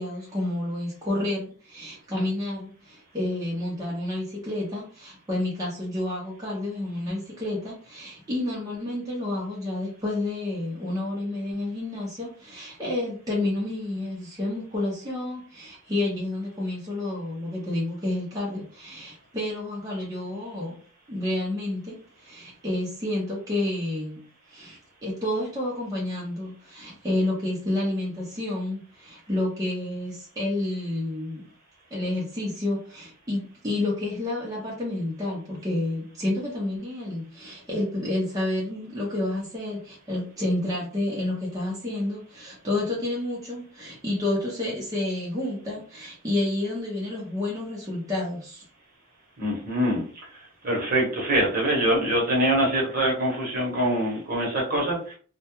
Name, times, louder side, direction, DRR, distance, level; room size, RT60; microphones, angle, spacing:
voice 1, 0.0-20.7 21.1-31.5 31.9-48.6, left 1 dB, 20° right, -5 dB, 0.6 m, -30 dB
voice 2, 49.4-50.0 50.6-55.2, right 1 dB, 45° right, -3 dB, 0.8 m, -24 dB
2.1 x 2.1 x 2.9 m, 0.44 s
head